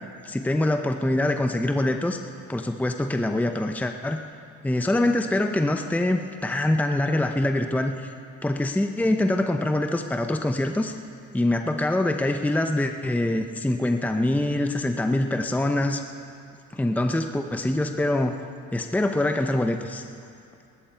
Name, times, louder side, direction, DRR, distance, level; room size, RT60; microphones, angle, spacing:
voice 1, 0.2-2.2 2.5-4.2 4.6-8.1 8.4-10.9 11.3-16.0 16.7-18.3 18.7-20.0, left 1 dB, 5° left, 6 dB, 0.7 m, -24 dB
19.0 x 13.0 x 4.5 m, 2.5 s
cardioid pair, 90°, 30 cm